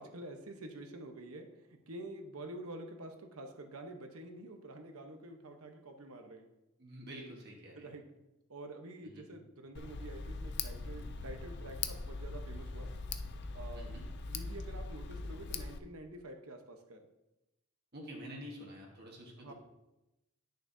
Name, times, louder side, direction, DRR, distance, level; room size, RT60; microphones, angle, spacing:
voice 1, 0.0-6.5 7.8-8.0 8.5-12.9 13.5-13.9 14.3-17.0 19.4-19.5, right 1 dB, 75° right, 5 dB, 1.0 m, -48 dB
voice 2, 6.8-7.9 9.0-9.2 13.7-14.1 17.9-19.5, equal, 45° right, -2 dB, 1.4 m, -48 dB
Tick, 9.7-15.8, left 4 dB, 50° left, 0.4 m, -41 dB
10.5 x 6.4 x 2.7 m, 0.95 s
head